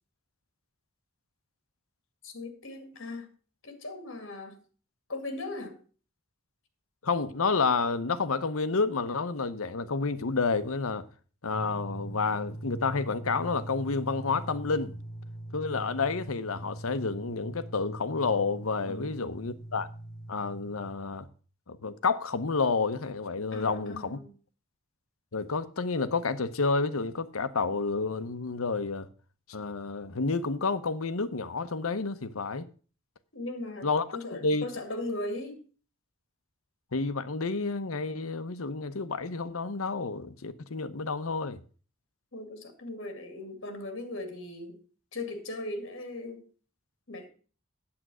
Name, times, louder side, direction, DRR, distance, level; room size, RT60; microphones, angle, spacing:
voice 1, 2.2-3.3 3.6-4.6 5.1-5.8 18.9-19.3 23.5-24.3 33.3-35.6 42.3-44.8 45.1-46.5 47.1-47.3, left 2 dB, 60° left, 2.3 m, -38 dB
voice 2, 7.0-11.0 11.4-15.0 15.5-19.9 20.3-21.3 21.7-24.2 25.3-29.1 29.5-32.7 33.8-34.0 34.3-34.6 36.9-41.6, left 4 dB, 85° left, 0.9 m, -30 dB
sound 1, 11.5-20.9, right 1 dB, 20° right, 1.3 m, -41 dB
8.8 x 8.1 x 6.2 m
head